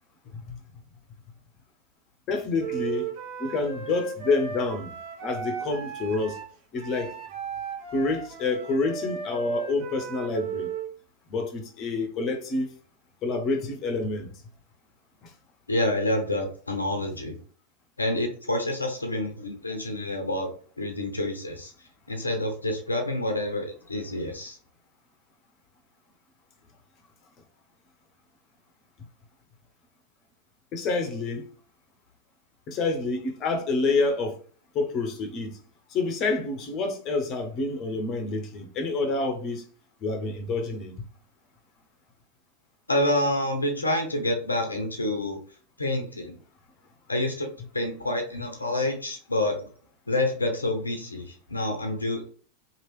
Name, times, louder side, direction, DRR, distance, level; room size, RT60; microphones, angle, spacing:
voice 1, 2.3-3.1 3.4-5.0 5.2-6.4 6.7-7.1 7.9-10.7 11.3-12.7 13.2-14.3 15.2-15.3 30.7-31.5 32.7-34.4 34.7-35.6 35.9-39.6 40.0-41.0, left 3 dB, 35° left, 0.7 m, -28 dB
Wind instrument woodwind instrument, 2.6-10.9, right 7 dB, 55° right, 0.9 m, -36 dB
voice 2, 15.7-17.4 18.0-20.5 20.8-21.7 22.1-24.6 42.9-45.4 45.8-46.4 47.1-47.5 47.7-49.7 50.1-52.3, left 1 dB, 80° left, 0.5 m, -28 dB
3.0 x 2.5 x 3.1 m
figure-of-eight pair, 90°, 0 cm